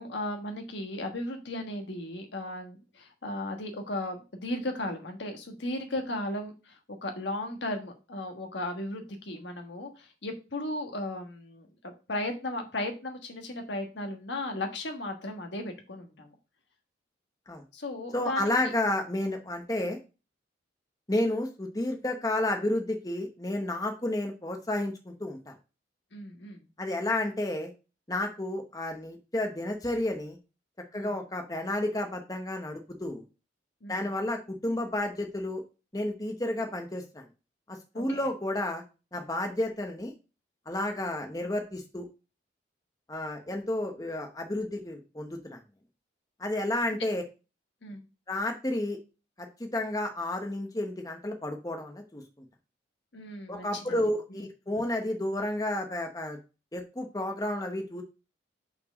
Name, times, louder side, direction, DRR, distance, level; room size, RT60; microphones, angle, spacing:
voice 1, 0.0-6.7 7.0-16.3 17.7-18.5 26.1-26.7 30.9-31.1 33.8-34.1 37.9-38.3 47.8-48.0 53.1-53.7 54.3-54.4, left 1 dB, 75° left, 4 dB, 1.4 m, -36 dB
voice 2, 18.1-20.0 21.1-25.5 26.8-27.7 28.1-30.4 30.9-33.2 33.9-35.6 35.9-37.2 37.7-38.8 39.1-40.1 40.7-42.1 43.1-45.6 46.4-47.2 48.3-49.0 49.4-52.2 53.5-56.4 56.7-58.0, left 1 dB, 20° left, 4 dB, 0.8 m, -31 dB
5.7 x 4.5 x 5.0 m, 0.31 s
head